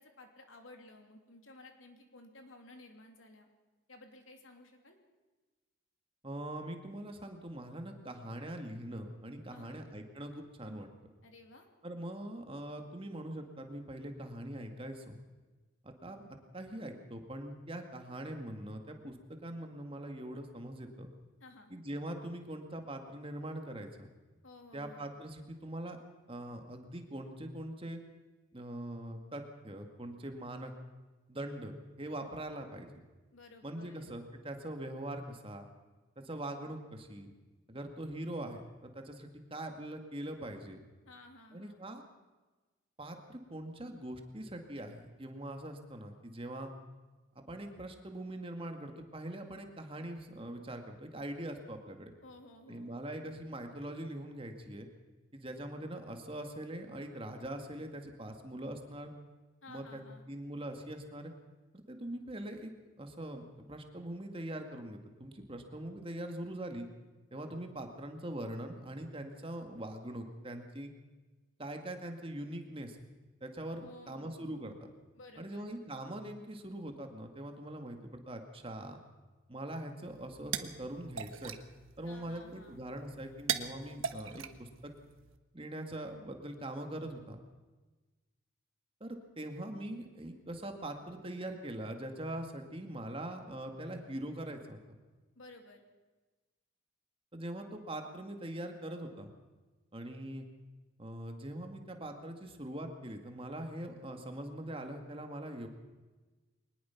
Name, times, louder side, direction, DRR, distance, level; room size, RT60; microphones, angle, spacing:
voice 1, 0.0-3.5 3.9-5.0 9.5-9.9 11.2-11.7 21.4-21.7 24.4-25.2 33.3-34.1 41.0-41.8 52.2-53.0 59.6-60.3 73.8-74.4 75.1-75.7 82.0-82.8 95.4-95.8, left 2 dB, 80° left, 4 dB, 2.9 m, -55 dB
voice 2, 6.2-10.9 11.8-15.2 15.8-21.1 21.7-24.1 24.7-26.0 26.3-28.0 28.5-30.7 31.3-32.9 33.6-35.7 36.2-37.3 37.7-40.8 41.5-42.0 43.0-46.7 47.4-52.1 52.7-54.9 55.3-59.1 59.7-60.0 60.3-61.3 61.9-62.7 63.0-66.9 67.3-70.9 71.6-73.0 73.4-74.9 75.4-79.0 79.5-81.5 82.0-84.9 85.5-87.4 89.0-94.8 97.3-99.3 99.9-100.5 101.0-105.7, right 1 dB, 25° right, 5 dB, 2.0 m, -42 dB
sound 1, 80.1-85.4, right 7 dB, 90° right, 1.3 m, -41 dB
22.5 x 20.0 x 5.9 m, 1.2 s
head